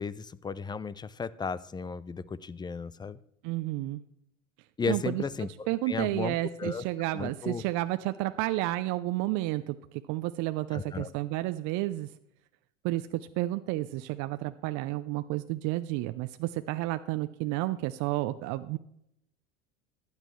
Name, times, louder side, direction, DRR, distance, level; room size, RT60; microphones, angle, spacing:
voice 1, 0.0-3.2 4.8-6.8 7.1-7.6 10.7-11.1, left 5 dB, 10° left, 18 dB, 0.4 m, -35 dB
voice 2, 3.4-4.0 4.9-5.2 5.7-12.1 12.8-18.8, right 17 dB, 50° right, 11 dB, 0.6 m, -31 dB
15.0 x 10.5 x 3.2 m, 0.76 s
hypercardioid pair, 85°, 38 cm